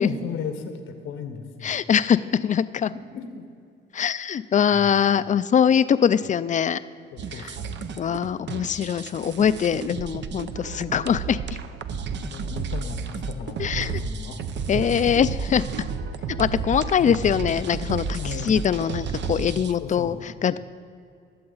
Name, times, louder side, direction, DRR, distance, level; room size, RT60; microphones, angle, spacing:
voice 1, 0.0-1.7 2.9-3.5 4.7-4.9 7.1-7.9 12.2-14.7 17.0-17.3 18.1-18.6 19.8-20.1, left 5 dB, 85° left, 7 dB, 1.2 m, -35 dB
voice 2, 1.6-2.9 3.9-6.8 7.4-7.5 8.0-11.4 13.6-14.0 14.7-15.6 16.4-20.6, left 8 dB, 40° left, 15 dB, 0.4 m, -22 dB
sound 1, 7.2-19.7, right 5 dB, 65° right, 0.7 m, -32 dB
20.0 x 7.6 x 4.0 m, 2.4 s
cardioid pair, 90°, 20 cm